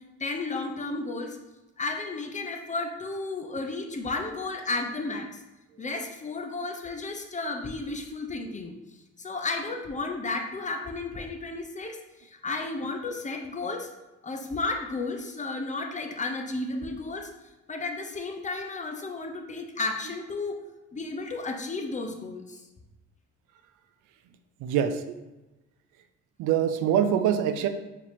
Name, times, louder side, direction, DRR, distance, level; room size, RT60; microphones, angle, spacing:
voice 1, 0.2-1.4 1.8-5.4 5.8-8.8 9.2-13.9 14.2-17.3 17.7-20.6 20.9-22.6, left 3 dB, 25° left, 4 dB, 0.6 m, -33 dB
voice 2, 24.6-25.2 26.4-27.7, right 9 dB, 85° right, 8 dB, 0.5 m, -24 dB
4.9 x 2.9 x 3.5 m, 1.0 s
cardioid pair, 90°, 30 cm